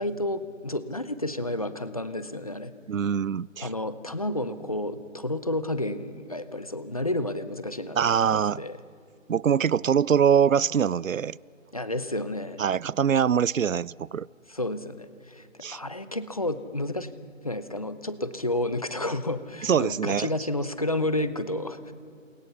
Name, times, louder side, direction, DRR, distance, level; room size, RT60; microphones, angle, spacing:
voice 1, 0.0-2.7 3.6-8.8 11.7-12.6 14.5-17.1 17.4-21.9, left 1 dB, 30° left, 13 dB, 0.9 m, -31 dB
voice 2, 2.9-3.7 8.0-8.6 9.3-11.4 12.6-14.3 15.6-15.8 19.6-20.3, right 8 dB, 75° right, 25 dB, 0.6 m, -23 dB
29.5 x 28.0 x 5.7 m, 2.3 s
figure-of-eight pair, 170°, 39 cm